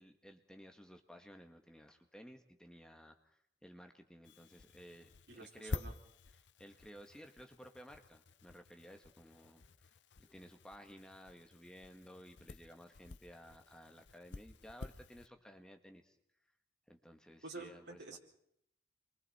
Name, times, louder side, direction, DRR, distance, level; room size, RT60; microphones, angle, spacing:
voice 1, 0.0-5.1 5.3-5.8 6.6-16.2 16.9-18.2, equal, 5° left, 4 dB, 1.5 m, -56 dB
sound 1, 4.2-15.3, left 3 dB, 85° left, 0.9 m, -50 dB
voice 2, 5.3-5.9 17.4-18.2, right 3 dB, 80° right, 0 dB, 4.7 m, -49 dB
29.0 x 23.0 x 4.3 m, 0.71 s
head